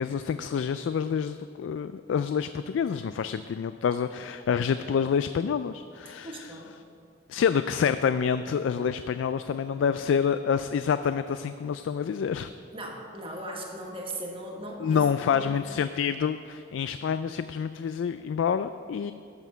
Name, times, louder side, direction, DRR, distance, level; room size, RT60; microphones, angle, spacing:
voice 1, 0.0-6.6 7.3-12.5 14.8-19.1, left 7 dB, 75° left, 11 dB, 0.3 m, -27 dB
voice 2, 6.2-6.7 12.7-15.0 15.3-15.5, right 1 dB, 30° right, 0 dB, 1.6 m, -38 dB
12.0 x 7.2 x 5.6 m, 2.5 s
head